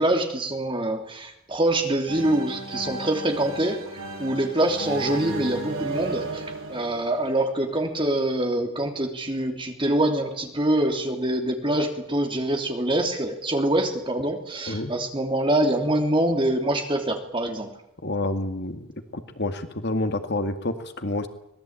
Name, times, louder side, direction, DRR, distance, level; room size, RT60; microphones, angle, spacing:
voice 1, 0.0-3.8 4.2-17.7, right 1 dB, 25° right, 4 dB, 3.2 m, -25 dB
sound 1, 2.1-7.8, right 2 dB, 75° right, 7.9 m, -34 dB
voice 2, 18.0-18.9 19.1-21.3, left 2 dB, 50° left, 8 dB, 2.0 m, -28 dB
25.0 x 19.5 x 9.0 m, 0.80 s
head